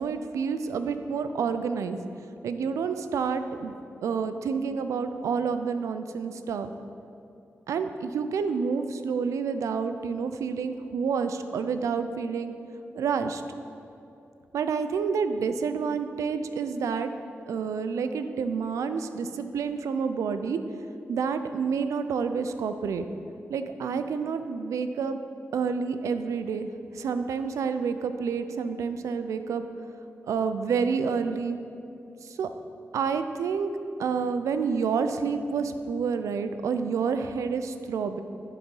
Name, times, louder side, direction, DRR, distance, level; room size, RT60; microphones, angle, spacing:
voice 1, 0.0-2.0 2.4-3.7 4.0-6.7 7.7-12.5 12.9-13.4 14.5-17.1 17.5-20.6 21.1-23.1 23.5-25.2 25.5-26.7 26.9-29.6 30.3-31.6 32.2-32.5 32.9-33.7 34.0-38.2, right 5 dB, 85° right, 9 dB, 0.4 m, -29 dB
11.0 x 4.0 x 5.4 m, 2.7 s
cardioid pair, 50°, 5 cm